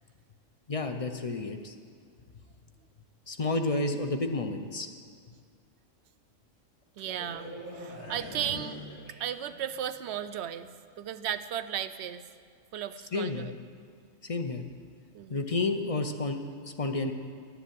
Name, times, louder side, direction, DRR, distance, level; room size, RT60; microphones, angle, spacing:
voice 1, 0.7-1.7 3.3-4.9 13.1-13.5 14.2-14.6 15.3-16.4 16.6-17.1, left 3 dB, 35° left, 6 dB, 0.6 m, -30 dB
sound 1, 7.0-9.7 10.0-10.3, left 1 dB, 80° left, 3.6 m, -43 dB
voice 2, 7.0-7.5 7.7-8.8 9.2-10.7 11.0-12.2 12.7-13.5 15.1-15.5, right 10 dB, 65° right, 12 dB, 0.8 m, -35 dB
12.0 x 7.0 x 9.2 m, 2.1 s
omnidirectional pair, 1.3 m